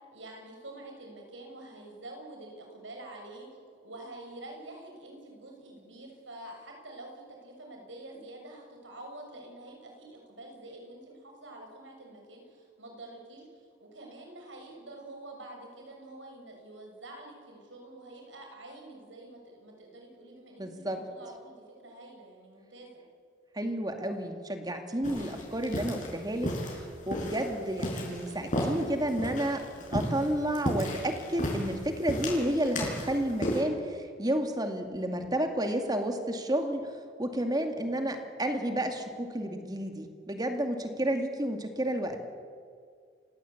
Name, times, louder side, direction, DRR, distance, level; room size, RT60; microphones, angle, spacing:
voice 1, 0.1-3.5 3.8-13.5 13.8-22.9 37.9-38.0, right 2 dB, 85° right, 1 dB, 6.8 m, -47 dB
voice 2, 20.6-21.0 23.5-29.6 29.9-36.9 37.2-42.2, right 1 dB, 20° right, 5 dB, 2.4 m, -31 dB
sound 1, 25.0-33.6, equal, 45° left, 6.4 m, -34 dB
29.0 x 16.5 x 8.7 m, 2.1 s
head